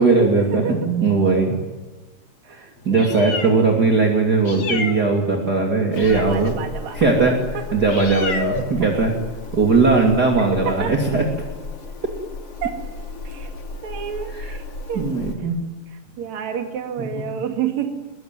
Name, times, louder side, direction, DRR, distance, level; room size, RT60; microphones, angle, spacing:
voice 1, 0.0-1.6 2.8-6.6 6.9-7.4 7.7-9.1 9.5-11.3 14.3-14.5 14.9-15.6 17.0-17.2, right 3 dB, 30° right, 1 dB, 3.3 m, -19 dB
voice 2, 2.4-3.3 6.1-7.1 7.5-7.7 10.4-11.0 12.6-12.8 13.2-13.5 13.8-15.1 16.2-18.1, right 8 dB, 65° right, 4 dB, 3.4 m, -29 dB
Meow, 2.8-15.3, left 3 dB, 50° left, 3.8 m, -33 dB
24.0 x 23.0 x 9.4 m, 1.2 s
omnidirectional pair, 3.6 m